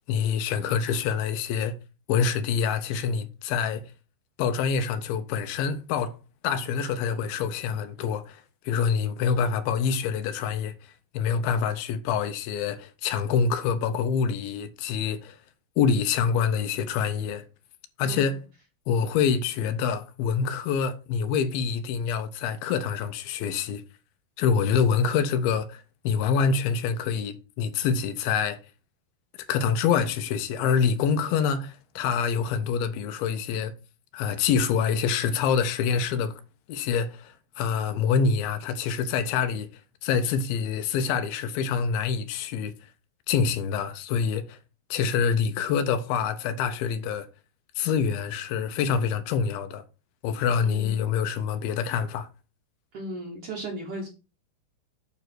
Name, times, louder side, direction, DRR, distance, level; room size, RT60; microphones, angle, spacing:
voice 1, 0.1-1.7 2.1-3.9 4.4-6.1 6.4-10.7 11.1-15.4 15.8-17.4 18.0-18.4 18.9-23.8 24.4-28.6 29.5-33.7 34.1-36.4 36.7-39.7 40.0-42.7 43.3-44.6 44.9-47.3 47.8-49.8 50.2-52.3, left 6 dB, 80° left, 2.4 m, -26 dB
voice 2, 50.6-51.0 52.9-54.1, right 1 dB, 60° right, 1.6 m, -36 dB
9.2 x 3.2 x 6.1 m
omnidirectional pair, 4.6 m